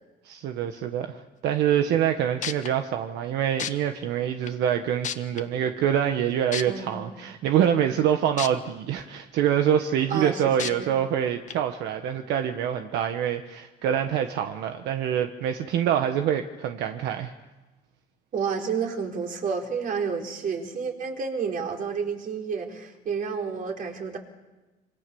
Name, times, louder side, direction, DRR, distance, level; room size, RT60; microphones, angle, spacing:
voice 1, 0.2-17.3, right 9 dB, 85° right, 6 dB, 1.4 m, -25 dB
sound 1, 2.1-2.2 2.4-2.7 3.6-3.7 4.5-4.6 5.0-5.4 6.5-6.6 8.4-8.5 9.0-9.1 10.6-10.7 11.5-11.6, left 8 dB, 45° left, 1.4 m, -30 dB
voice 2, 6.7-7.2 10.1-10.9 18.3-24.2, right 6 dB, 55° right, 1 dB, 4.5 m, -30 dB
27.5 x 25.5 x 7.1 m, 1.1 s
cardioid pair, 110°, 17 cm